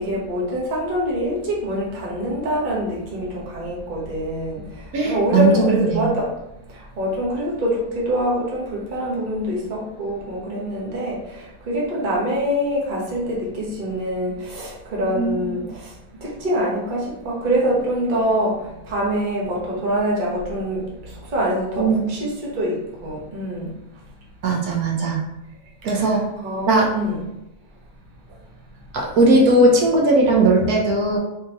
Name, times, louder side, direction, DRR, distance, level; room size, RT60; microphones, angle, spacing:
voice 1, 0.0-4.6 5.0-6.3 6.7-15.9 16.2-18.6 18.8-23.7 25.9-27.2, equal, 35° right, -4 dB, 0.9 m, -25 dB
voice 2, 4.9-6.1 15.1-15.6 21.8-22.0 24.4-25.2 25.8-26.2 26.7-26.9 28.9-31.2, right 2 dB, 75° right, -1 dB, 1.2 m, -18 dB
3.5 x 2.9 x 2.8 m, 0.91 s
omnidirectional pair, 1.7 m